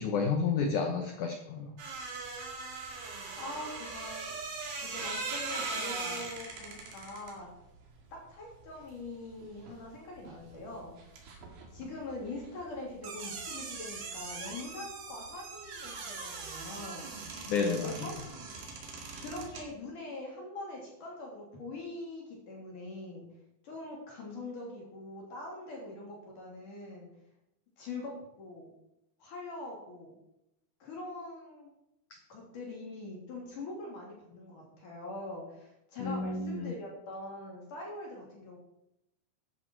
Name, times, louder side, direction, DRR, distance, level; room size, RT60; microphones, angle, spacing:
voice 1, 0.0-1.7 17.5-17.9 36.0-36.7, left 5 dB, 85° left, 4 dB, 1.7 m, -30 dB
sound 1, 1.8-9.9 10.2-19.7, right 4 dB, 60° right, 3.6 m, -41 dB
voice 2, 3.4-4.2 4.8-7.5 8.1-11.0 11.7-17.1 17.7-18.2 19.2-23.3 23.6-27.1 27.8-28.7 29.2-30.1 30.8-31.7 32.3-38.6, left 2 dB, 50° left, -2 dB, 4.2 m, -43 dB
13.0 x 11.0 x 4.5 m, 0.86 s
omnidirectional pair, 5.1 m